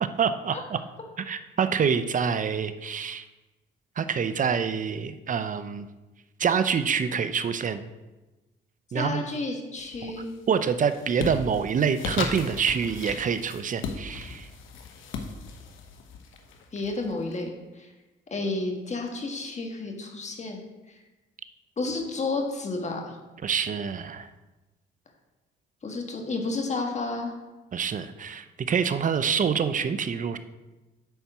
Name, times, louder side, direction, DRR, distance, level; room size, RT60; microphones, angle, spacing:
voice 1, 0.0-0.8 1.2-3.2 4.0-5.9 6.4-7.9 8.9-9.2 10.5-14.5 23.4-24.3 27.7-30.4, right 6 dB, 40° right, 11 dB, 0.6 m, -26 dB
voice 2, 8.9-10.3 16.7-17.9 18.3-20.6 20.9-21.0 21.8-23.2 25.8-27.3, left 3 dB, 35° left, 2 dB, 1.5 m, -31 dB
sound 1, 9.8-10.3 10.7-17.3, left 4 dB, 80° left, 1.0 m, -37 dB
9.1 x 4.3 x 6.0 m, 1.1 s
cardioid pair, 90°, 20 cm